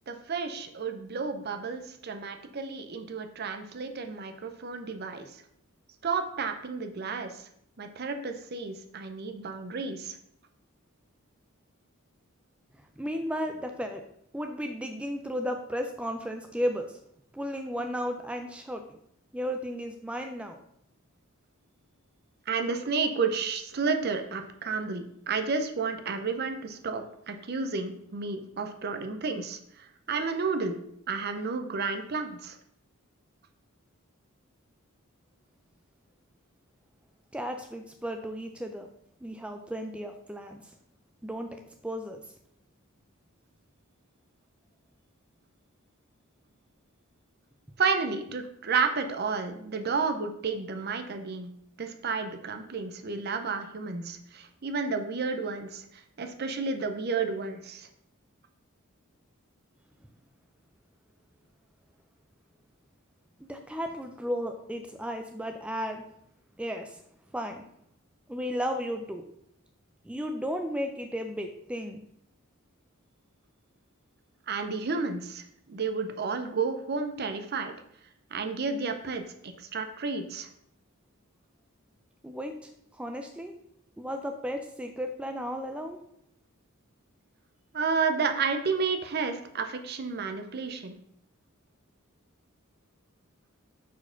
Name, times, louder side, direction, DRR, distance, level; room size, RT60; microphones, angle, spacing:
voice 1, 0.1-5.3 6.0-7.5 7.8-10.2 22.5-30.8 31.1-32.6 47.8-51.5 51.8-55.8 56.2-57.9 74.5-77.7 78.3-80.5 87.7-91.0, right 4 dB, 50° right, 7 dB, 0.6 m, -31 dB
voice 2, 13.0-14.0 14.3-17.0 17.3-19.0 19.3-20.6 37.3-38.9 39.2-40.6 41.2-42.2 63.4-66.0 66.6-67.0 67.3-67.6 68.3-69.2 70.0-72.0 82.2-83.5 84.0-86.0, equal, 5° right, 5 dB, 0.3 m, -34 dB
4.6 x 4.3 x 5.6 m, 0.73 s
head